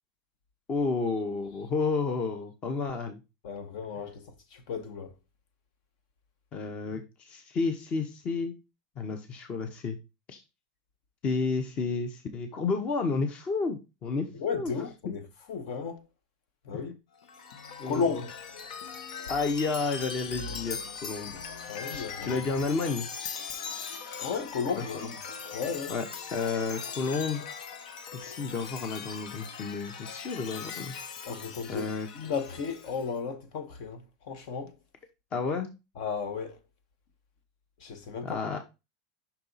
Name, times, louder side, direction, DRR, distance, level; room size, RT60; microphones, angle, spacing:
voice 1, 0.7-3.2 6.5-8.5 9.0-10.0 10.3-10.4 11.2-14.7 17.8-18.2 19.3-21.4 21.9-23.1 24.9-25.1 25.9-26.0 26.3-27.5 28.1-30.9 31.7-32.1 35.3-35.7 38.2-38.6, left 4 dB, 30° left, 0.8 m, -31 dB
voice 2, 3.4-5.1 14.3-15.2 15.5-16.0 16.6-17.0 17.9-18.3 21.7-22.4 24.2-25.1 25.5-25.9 31.2-34.7 36.0-36.6 37.8-38.4, left 5 dB, 60° left, 1.2 m, -34 dB
Chime, 17.2-33.1, left 6 dB, 90° left, 0.8 m, -40 dB
5.7 x 4.2 x 4.0 m
supercardioid pair, 155°, 4 cm